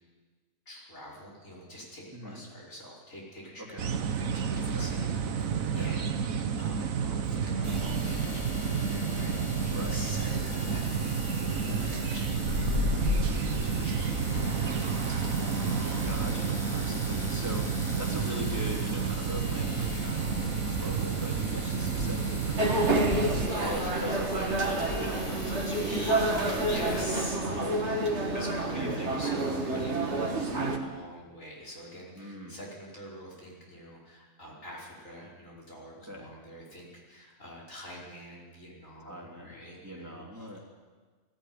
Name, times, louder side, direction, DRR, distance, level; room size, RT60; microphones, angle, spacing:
voice 1, 0.7-3.9 4.3-15.4 23.5-23.8 25.7-27.4 27.9-40.6, equal, 70° left, -5 dB, 5.7 m, -45 dB
voice 2, 2.1-2.4 3.6-3.9 4.7-4.9 5.7-5.9 9.7-10.0 11.5-11.9 16.0-27.8 28.3-29.1 29.5-29.6 32.1-32.6 36.1-36.3 39.0-39.5 39.8-40.6, equal, 10° right, -1 dB, 3.1 m, -41 dB
sound 1, 3.8-23.5, right 6 dB, 80° right, 1.4 m, -31 dB
sound 2, 7.6-27.0, left 2 dB, 20° left, 2.0 m, -37 dB
sound 3, 22.6-30.8, right 2 dB, 55° right, 2.2 m, -29 dB
19.0 x 15.5 x 9.6 m, 1.4 s
omnidirectional pair, 1.4 m